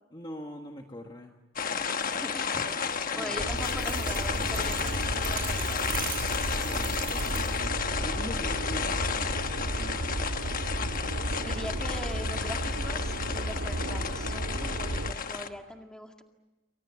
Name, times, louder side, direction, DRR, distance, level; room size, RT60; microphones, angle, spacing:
voice 1, 0.1-1.4 3.1-3.5 6.4-10.0, equal, 20° left, 3 dB, 1.5 m, -43 dB
sound 1, 1.6-15.5, left 6 dB, 40° left, 1.1 m, -32 dB
voice 2, 2.2-6.0 11.4-16.2, equal, 5° left, 3 dB, 2.0 m, -41 dB
sound 2, 3.4-15.1, right 1 dB, 70° right, 1.7 m, -33 dB
sound 3, 3.6-7.8, right 9 dB, 40° right, 5.3 m, -41 dB
29.5 x 24.0 x 7.1 m, 1.1 s
head